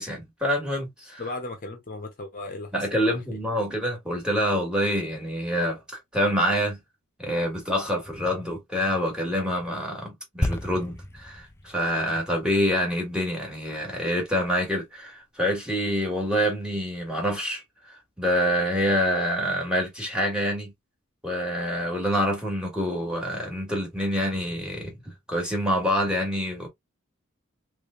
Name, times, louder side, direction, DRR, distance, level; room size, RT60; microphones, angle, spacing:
voice 1, 0.0-1.2 2.7-5.8 6.1-6.8 7.2-20.7 21.2-26.7, equal, 5° right, 1.7 m, -26 dB
voice 2, 1.2-3.4, left 2 dB, 45° left, 0.9 m, -37 dB
sound 1, 10.4-14.1 14.3-14.5, left 1 dB, 10° left, 0.4 m, -34 dB
3.5 x 3.4 x 2.5 m
head